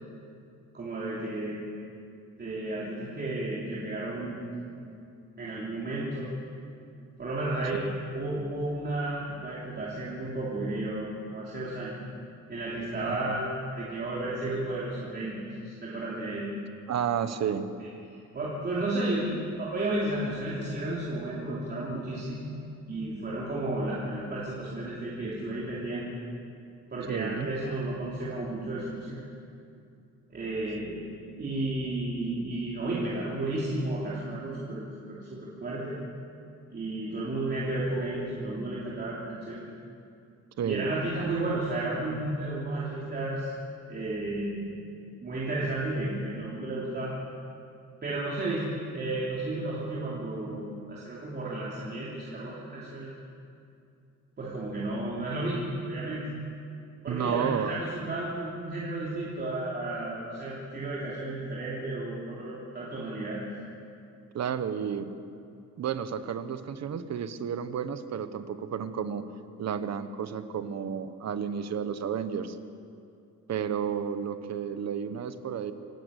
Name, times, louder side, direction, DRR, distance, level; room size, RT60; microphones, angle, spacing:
voice 1, 0.7-1.6 2.4-4.9 5.4-6.3 7.2-7.8 8.1-12.0 12.5-13.5 13.8-16.5 17.8-17.9 18.3-22.5 22.9-26.1 26.9-29.2 30.3-31.0 31.4-36.0 36.7-39.6 40.6-43.5 43.9-44.8 45.2-47.1 48.0-53.1 54.4-56.3 57.0-63.4, right 2 dB, 30° right, -6 dB, 3.2 m, -33 dB
voice 2, 13.1-13.4 16.9-17.7 27.1-27.5 40.6-40.9 57.1-57.8 64.3-65.1 65.8-69.2 69.6-72.6 73.5-75.7, right 8 dB, 55° right, 11 dB, 1.1 m, -32 dB
26.5 x 13.0 x 8.3 m, 2.5 s
wide cardioid pair, 175°, 31 cm